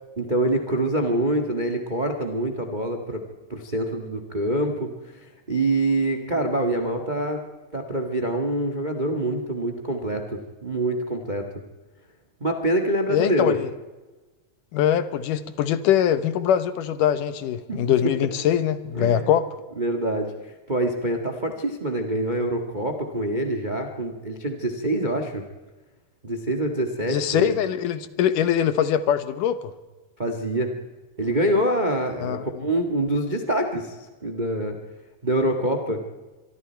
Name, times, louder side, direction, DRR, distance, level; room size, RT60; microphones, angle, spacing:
voice 1, 0.2-3.2 3.5-7.4 7.7-11.5 12.4-13.5 17.7-17.8 18.9-19.3 19.8-25.4 26.2-27.5 30.2-30.8 31.2-34.8 35.2-36.0, right 1 dB, 70° right, 5 dB, 0.4 m, -25 dB
voice 2, 13.1-13.7 14.7-19.5 27.1-29.7 32.2-32.7, left 9 dB, 70° left, 13 dB, 2.4 m, -22 dB
25.0 x 24.0 x 4.5 m, 1.2 s
omnidirectional pair, 4.1 m